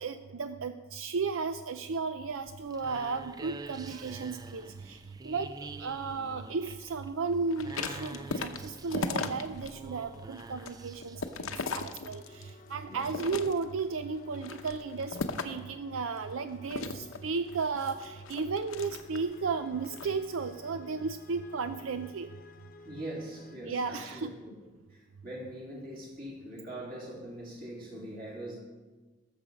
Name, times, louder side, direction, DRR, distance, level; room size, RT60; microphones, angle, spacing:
voice 1, 0.0-5.0 5.2-15.2 15.4-22.3 23.6-24.3, right 4 dB, 80° right, 10 dB, 0.5 m, -34 dB
sound 1, 2.3-11.4, right 3 dB, 20° right, 0.3 m, -47 dB
sound 2, 7.5-9.7 10.1-12.5 12.9-13.8 14.3-15.7 16.7-19.3 19.8-20.1, left 4 dB, 90° left, 0.9 m, -37 dB
sound 3, 12.1-23.6, left 3 dB, 40° left, 0.8 m, -54 dB
voice 2, 22.8-24.5 24.9-28.6, right 1 dB, 45° right, -3 dB, 3.6 m, -42 dB
19.0 x 7.2 x 5.4 m, 1.3 s
head